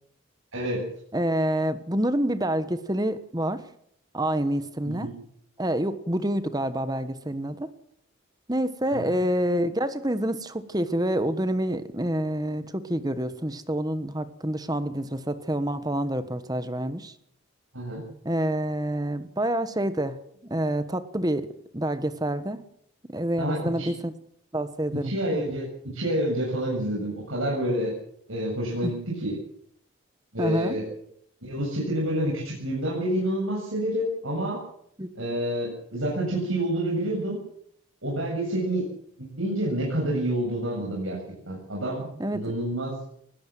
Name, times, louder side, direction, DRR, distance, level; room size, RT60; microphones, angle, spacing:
voice 1, 0.5-0.8 4.8-5.1 8.9-9.2 17.7-18.0 23.4-23.9 24.9-27.9 28.3-29.3 30.3-30.8 31.4-34.6 35.2-37.4 38.0-38.9 39.2-41.2 41.5-42.9, right 1 dB, 75° right, -3 dB, 7.5 m, -28 dB
voice 2, 1.1-3.6 4.1-5.1 5.6-7.7 8.5-17.1 18.2-20.2 20.5-21.5 21.7-22.6 23.1-24.1 24.5-25.4 28.8-28.9 30.4-30.8 35.0-35.3 42.2-42.4, right 1 dB, 20° right, 12 dB, 1.3 m, -27 dB
20.5 x 17.5 x 7.6 m, 0.68 s
head